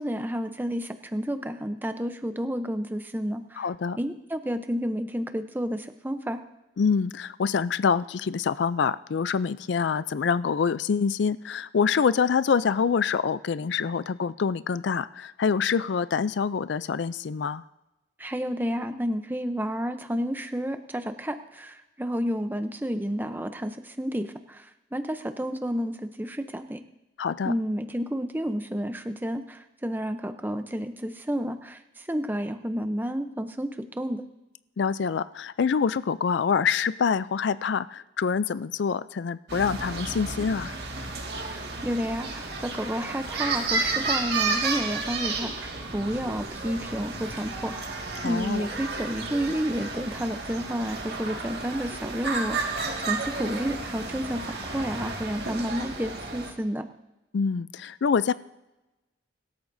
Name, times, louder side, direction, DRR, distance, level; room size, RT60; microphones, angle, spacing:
voice 1, 0.0-3.6 4.0-6.4 18.2-26.8 27.4-34.2 41.4-56.9, equal, 10° right, 9 dB, 0.6 m, -31 dB
voice 2, 3.6-4.0 6.8-17.6 27.2-27.5 34.8-40.8 48.2-48.7 57.3-58.3, left 6 dB, 75° left, 16 dB, 0.4 m, -26 dB
sound 1, 39.5-56.5, right 3 dB, 60° right, 1.9 m, -32 dB
24.0 x 13.0 x 2.7 m, 1.0 s
head